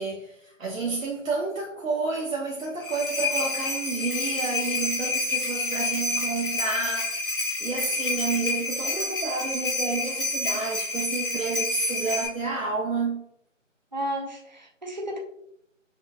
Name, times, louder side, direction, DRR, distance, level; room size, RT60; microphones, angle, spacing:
voice 1, 0.0-13.2, right 3 dB, 85° right, 0.9 m, -30 dB
sound 1, 2.6-12.3, left 2 dB, 45° left, 1.3 m, -29 dB
voice 2, 13.9-15.2, right 1 dB, 35° right, 0.6 m, -32 dB
6.1 x 2.3 x 2.4 m
figure-of-eight pair, 165°, 39 cm